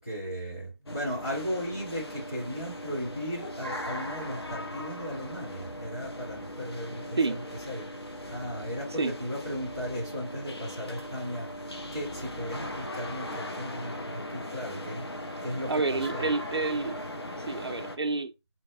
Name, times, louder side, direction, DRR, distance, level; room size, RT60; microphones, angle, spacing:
voice 1, 0.0-7.4 7.7-7.9 8.3-11.5 11.9-15.1 15.4-16.2, equal, 10° left, 0.8 m, -36 dB
sound 1, 0.9-18.0, left 1 dB, 60° left, 0.7 m, -39 dB
voice 2, 15.7-17.0 17.5-18.3, right 3 dB, 65° right, 0.4 m, -29 dB
4.0 x 2.0 x 2.3 m
figure-of-eight pair, 170°, 15 cm